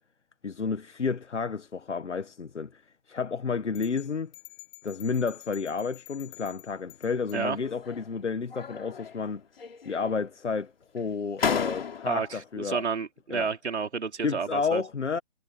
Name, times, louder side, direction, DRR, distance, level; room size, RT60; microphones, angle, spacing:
voice 1, 0.4-4.3 4.8-9.4 9.8-12.8 13.3-13.5 14.2-15.2, left 5 dB, 85° left, 1.6 m, -31 dB
sound 1, 3.7-7.4, left 22 dB, 15° left, 6.2 m, -49 dB
sound 2, 7.5-8.1 8.5-9.3 9.6-10.3 11.0-11.1 11.4-12.3, left 7 dB, 55° left, 3.6 m, -33 dB
voice 2, 12.1-14.8, right 5 dB, 75° right, 3.3 m, -31 dB
hypercardioid pair, 160°, 34 cm